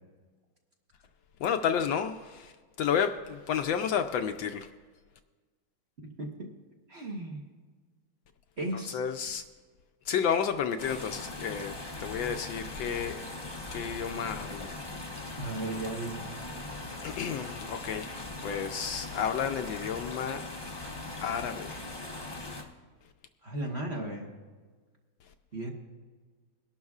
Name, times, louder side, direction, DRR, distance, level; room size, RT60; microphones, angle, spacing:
voice 1, 1.4-4.7 8.7-9.4 10.1-11.7 12.0-13.2 13.7-14.8 17.0-20.5 21.2-21.8, left 7 dB, 75° left, 7 dB, 1.2 m, -31 dB
voice 2, 6.9-7.4 8.6-9.0 15.4-16.2 23.4-24.3 25.5-25.7, right 2 dB, 40° right, 0 dB, 1.2 m, -35 dB
sound 1, 10.8-22.6, left 2 dB, 20° left, 0.6 m, -40 dB
22.5 x 11.5 x 2.4 m, 1.4 s
omnidirectional pair, 2.3 m